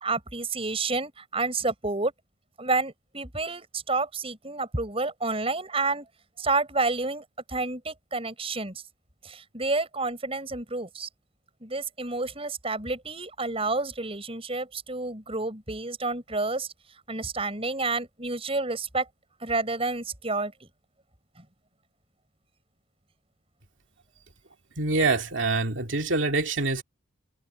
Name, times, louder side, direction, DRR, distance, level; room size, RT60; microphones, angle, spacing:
voice 1, 0.0-2.1 2.6-6.1 6.4-8.8 9.2-11.1 11.6-16.7 17.1-19.1 19.4-20.7 21.4-21.5, right 3 dB, 30° right, 7.4 m, -29 dB
voice 2, 24.8-26.8, right 3 dB, 75° right, 2.4 m, -25 dB
head